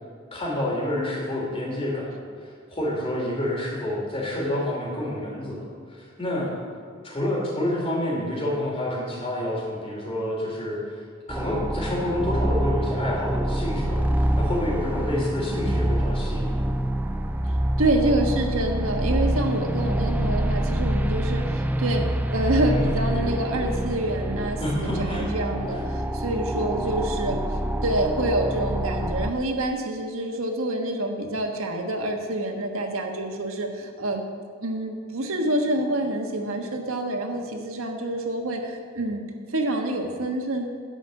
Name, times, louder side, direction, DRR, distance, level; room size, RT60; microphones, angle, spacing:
voice 1, 0.3-5.7 6.0-6.5 7.0-10.9 11.3-16.7 22.6-22.9 24.6-25.3 25.7-25.8, left 1 dB, 25° left, -4 dB, 2.9 m, -28 dB
sound 1, 11.3-29.3, right 1 dB, 10° right, 0.3 m, -26 dB
voice 2, 17.8-27.4 27.8-34.2 34.6-39.2 39.5-40.7, right 1 dB, 90° right, 3 dB, 1.4 m, -27 dB
11.5 x 5.2 x 8.1 m, 2.1 s
head